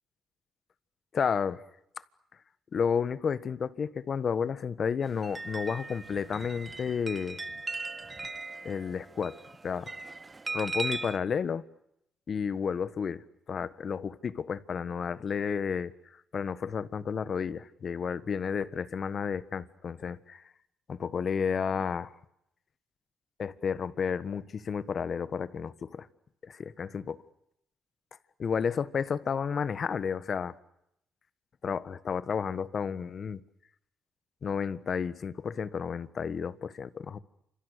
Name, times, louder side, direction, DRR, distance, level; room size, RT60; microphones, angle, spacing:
voice 1, 1.1-1.6 2.7-7.4 8.6-10.0 10.5-11.7 12.3-20.4 20.9-22.1 23.4-26.1 26.4-27.2 28.4-30.5 31.6-33.4 34.4-37.2, left 6 dB, 50° left, 1.4 m, -32 dB
sound 1, 5.0-11.2, right 3 dB, 25° right, 1.2 m, -38 dB
29.0 x 27.0 x 6.8 m
cardioid pair, 90°, 0 cm